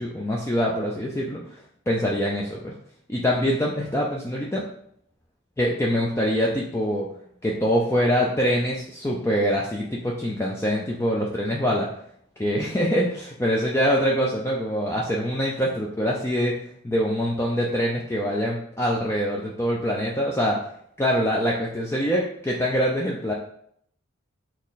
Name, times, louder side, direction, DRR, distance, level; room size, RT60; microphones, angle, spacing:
voice 1, 0.0-2.7 3.1-4.6 5.6-7.1 7.4-11.9 12.4-16.5 16.8-20.6 21.0-23.3, equal, 10° left, -3 dB, 0.4 m, -24 dB
4.2 x 3.0 x 4.1 m, 0.68 s
head